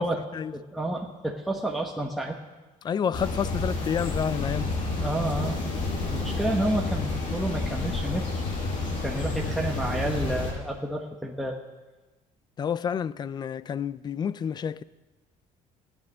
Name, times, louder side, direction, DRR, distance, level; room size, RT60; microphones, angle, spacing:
voice 1, 0.5-2.4 4.9-5.7 6.1-8.3 8.9-11.6, right 1 dB, ahead, 1.2 m, -30 dB
voice 2, 2.8-4.7 12.6-14.8, left 7 dB, 30° left, 0.4 m, -29 dB
sound 1, 3.1-10.5, left 3 dB, 65° left, 6.2 m, -30 dB
15.5 x 9.9 x 6.7 m
cardioid pair, 135°, 14 cm